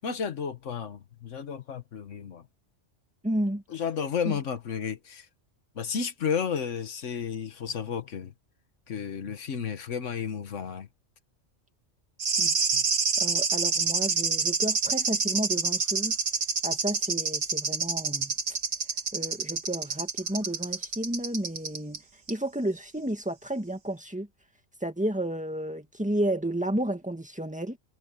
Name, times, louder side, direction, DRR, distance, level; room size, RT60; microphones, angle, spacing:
voice 1, 0.0-2.5 3.7-5.3 5.7-8.3 8.9-10.9 12.7-12.8, left 7 dB, 90° left, 1.5 m, -32 dB
voice 2, 3.2-3.6 4.3-4.4 12.4-12.5 13.2-16.1 16.6-18.3 19.1-22.0 22.3-24.3 24.8-27.8, right 1 dB, 5° right, 2.0 m, -31 dB
sound 1, 12.2-22.0 22.3-22.4, right 4 dB, 70° right, 1.9 m, -27 dB
omnidirectional pair, 1.2 m